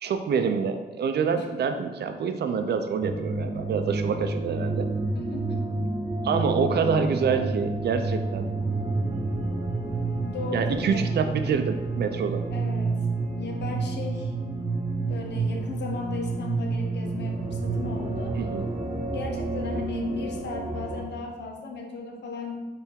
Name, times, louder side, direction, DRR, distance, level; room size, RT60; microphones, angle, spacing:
voice 1, 0.0-4.9 6.2-8.5 10.5-12.4 18.3-18.7, right 6 dB, 75° right, 8 dB, 0.4 m, -26 dB
sound 1, 3.0-21.0, right 3 dB, 30° right, 1.4 m, -29 dB
voice 2, 5.1-5.7 10.2-11.0 12.5-13.0 13.4-14.3 15.1-18.3 19.1-22.7, left 3 dB, 80° left, 2 dB, 0.7 m, -35 dB
4.4 x 3.3 x 3.6 m, 1.2 s
wide cardioid pair, 125°, 17 cm